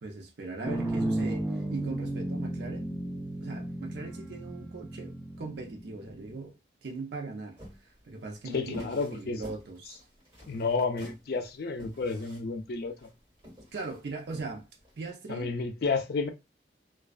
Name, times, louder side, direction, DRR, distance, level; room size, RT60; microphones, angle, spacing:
voice 1, 0.0-3.0 3.4-6.5 6.8-7.6 7.8-10.0 13.7-14.7 15.0-15.6, right 3 dB, 60° right, 0.5 m, -39 dB
sound 1, 0.6-6.4, right 1 dB, 10° right, 0.4 m, -34 dB
sound 2, 7.6-15.0, equal, 25° right, 1.5 m, -48 dB
voice 2, 8.5-9.4 10.5-13.1 15.3-16.3, left 4 dB, 55° left, 0.4 m, -31 dB
2.3 x 2.3 x 2.3 m
head